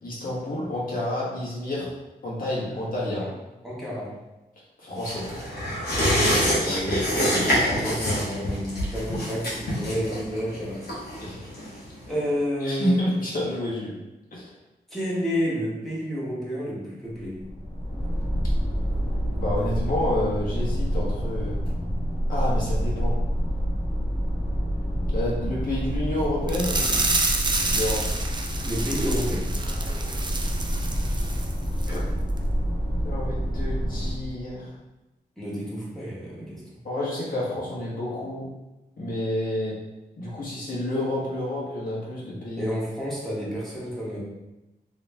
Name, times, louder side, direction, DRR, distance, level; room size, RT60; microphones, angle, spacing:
voice 1, 0.0-1.9 2.2-3.2 4.8-5.3 6.6-7.6 11.2-11.5 12.6-13.9 14.3-14.5 19.4-21.5 22.3-23.2 25.1-27.1 27.6-28.0 31.9-32.0 33.0-34.7 36.8-38.5 39.0-39.7 40.2-42.7, left 1 dB, 60° left, -6 dB, 1.4 m, -29 dB
voice 2, 3.6-4.2 5.9-7.0 7.3-11.0 12.1-13.0 14.9-17.4 28.6-29.5 35.4-36.6 42.6-44.2, equal, ahead, -7 dB, 1.4 m, -30 dB
sound 1, 5.0-12.1 12.4-12.5, equal, 85° left, 1.1 m, -26 dB
sound 2, 17.1-34.3, equal, 30° left, 1.3 m, -27 dB
sound 3, 26.5-31.5 31.8-32.0 32.4-32.5, right 3 dB, 30° right, 0.4 m, -28 dB
3.0 x 3.0 x 3.4 m, 1.0 s
wide cardioid pair, 90°, 16 cm